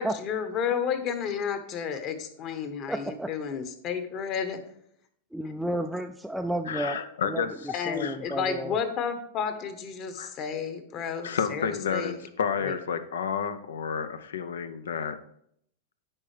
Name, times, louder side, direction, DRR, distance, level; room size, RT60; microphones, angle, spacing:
voice 1, 0.0-4.6 7.7-12.2 12.6-12.7, left 7 dB, 40° left, 8 dB, 1.1 m, -31 dB
voice 2, 2.9-3.3 5.3-8.8, right 1 dB, 5° right, 4 dB, 0.3 m, -32 dB
voice 3, 6.7-8.2 10.2-10.3 11.2-15.2, left 6 dB, 90° left, 11 dB, 0.6 m, -31 dB
8.7 x 5.6 x 3.3 m, 0.69 s
hypercardioid pair, 120°, 0 cm